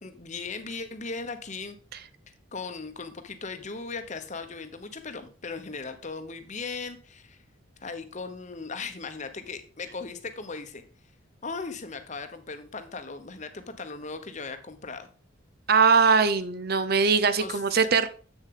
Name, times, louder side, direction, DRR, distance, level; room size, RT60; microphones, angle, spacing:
voice 1, 0.0-1.8 2.5-7.4 7.8-10.8 11.4-15.1 17.4-17.6, left 4 dB, 35° left, 8 dB, 0.9 m, -38 dB
voice 2, 15.7-18.1, right 5 dB, 50° right, 12 dB, 0.6 m, -21 dB
8.2 x 6.7 x 3.8 m, 0.40 s
head